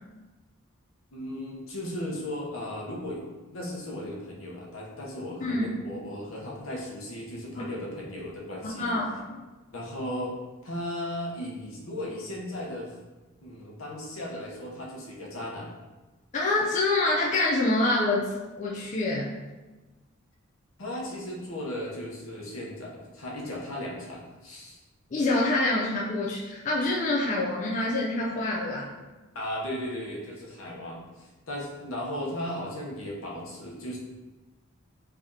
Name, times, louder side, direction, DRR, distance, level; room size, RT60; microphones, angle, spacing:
voice 1, 1.1-3.2 3.5-8.9 9.7-10.3 10.6-12.9 13.4-15.7 20.8-24.8 29.3-34.0, left 1 dB, 80° left, -3 dB, 0.9 m, -36 dB
voice 2, 8.8-9.4 16.3-19.3 25.1-29.0, left 2 dB, 35° left, -5 dB, 0.5 m, -26 dB
3.4 x 2.8 x 3.7 m, 1.2 s
head